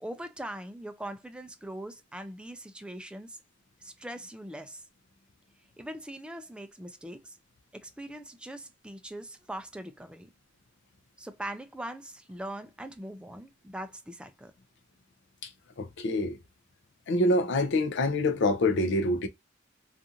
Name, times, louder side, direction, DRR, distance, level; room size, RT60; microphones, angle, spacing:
voice 1, 0.0-3.4 3.8-4.8 5.8-7.4 7.7-10.3 11.2-14.5, right 1 dB, 5° right, 0.3 m, -41 dB
voice 2, 15.8-16.4 17.1-19.3, left 1 dB, 65° left, 0.5 m, -26 dB
2.5 x 2.5 x 2.7 m
head